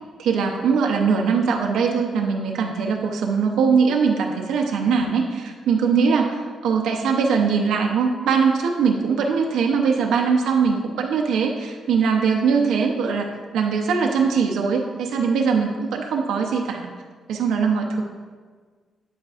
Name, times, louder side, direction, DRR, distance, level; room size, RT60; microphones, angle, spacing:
voice 1, 0.2-13.3 13.5-16.9 17.3-18.0, right 5 dB, 85° right, 1 dB, 0.7 m, -21 dB
8.9 x 7.3 x 2.5 m, 1.5 s
cardioid pair, 170°, 0 cm